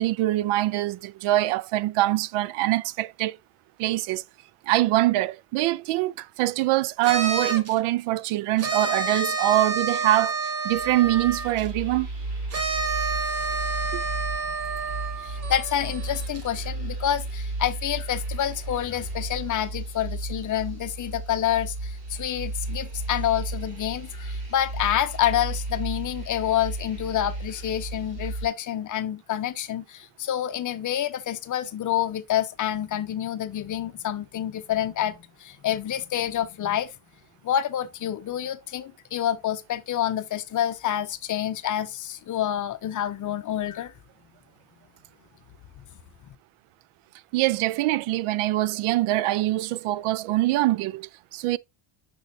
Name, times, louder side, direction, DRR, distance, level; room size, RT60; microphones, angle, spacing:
voice 1, 0.0-3.4 3.8-4.2 4.7-10.4 10.6-12.1 13.9-14.0 47.3-51.6, right 16 dB, 80° right, 0.6 m, -24 dB
sound 1, 7.0-7.8 8.6-11.7 12.5-16.4, right 4 dB, 30° right, 1.0 m, -29 dB
sound 2, 10.7-28.5, right 2 dB, 50° right, 3.4 m, -34 dB
voice 2, 15.2-36.9 37.4-43.9, left 11 dB, 40° left, 0.7 m, -28 dB
6.9 x 6.1 x 2.6 m
cardioid pair, 165°, 50 cm